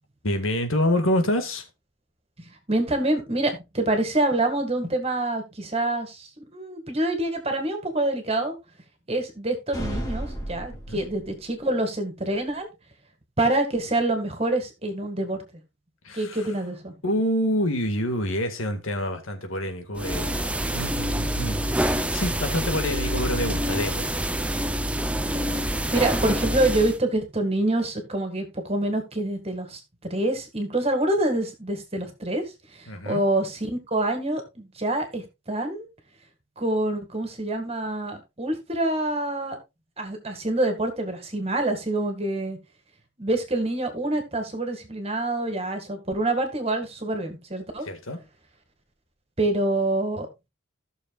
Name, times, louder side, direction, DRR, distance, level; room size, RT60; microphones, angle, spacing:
voice 1, 0.2-1.7 10.9-11.0 16.0-16.5 17.0-24.1 32.9-33.2 47.8-48.2, equal, 75° left, 1.9 m, -27 dB
voice 2, 2.4-8.6 9.1-12.7 13.4-15.4 16.1-16.9 25.2-32.4 32.7-35.9 36.6-39.6 40.0-42.6 43.2-47.9 49.4-50.5, right 2 dB, 30° right, 2.0 m, -26 dB
sound 1, 9.7-11.4, equal, 15° left, 2.4 m, -33 dB
sound 2, 19.9-27.0, right 1 dB, 5° right, 0.5 m, -26 dB
16.0 x 6.6 x 2.4 m
head